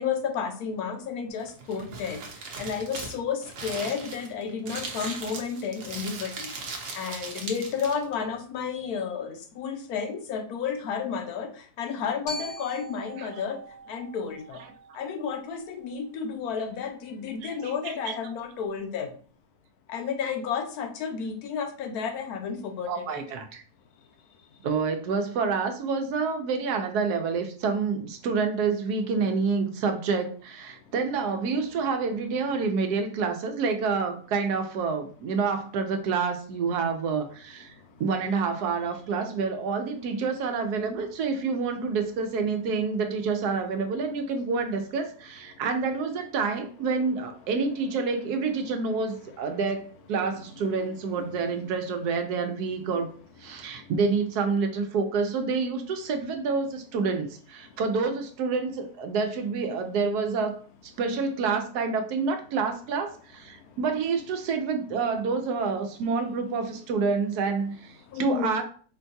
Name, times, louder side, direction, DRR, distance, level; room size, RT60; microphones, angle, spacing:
voice 1, 0.0-13.6 13.9-14.6 14.9-19.1 19.9-23.2 30.9-31.0 37.7-38.0 45.5-45.6 50.8-51.3 53.5-53.9 57.6-57.8 63.5-63.8 68.1-68.5, left 6 dB, 75° left, 6 dB, 1.1 m, -32 dB
Crumpling crinkling, 1.4-8.1, right 4 dB, 60° right, 1.0 m, -38 dB
Glockenspiel, 12.3-16.4, equal, 90° left, 2.2 m, -43 dB
voice 2, 17.4-17.9 22.9-23.6 24.6-37.7 38.0-53.1 53.4-68.6, right 4 dB, 80° right, 6 dB, 1.1 m, -28 dB
4.5 x 2.2 x 2.6 m, 0.42 s
omnidirectional pair, 1.7 m